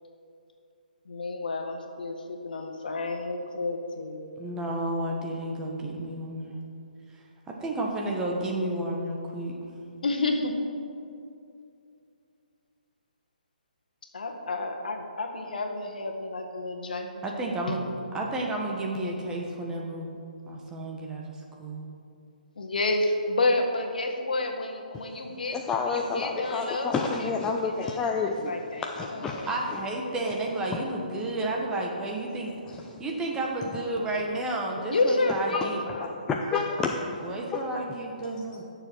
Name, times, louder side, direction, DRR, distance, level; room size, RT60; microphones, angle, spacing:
voice 1, 1.0-4.3 10.0-10.5 14.1-17.1 17.7-17.8 22.6-29.5 29.7-30.2 30.9-31.0 34.9-36.2, left 2 dB, 70° left, 3 dB, 1.5 m, -30 dB
voice 2, 4.4-6.6 7.1-9.5 17.2-20.2 20.5-21.8 29.4-35.8 37.2-38.6, right 1 dB, 10° right, -1 dB, 1.3 m, -32 dB
voice 3, 25.5-29.5 35.5-35.6 36.0-37.2 37.5-37.7, left 4 dB, 10° left, 1 dB, 0.5 m, -29 dB
16.5 x 6.8 x 4.6 m, 2.6 s
hypercardioid pair, 145°, 5 cm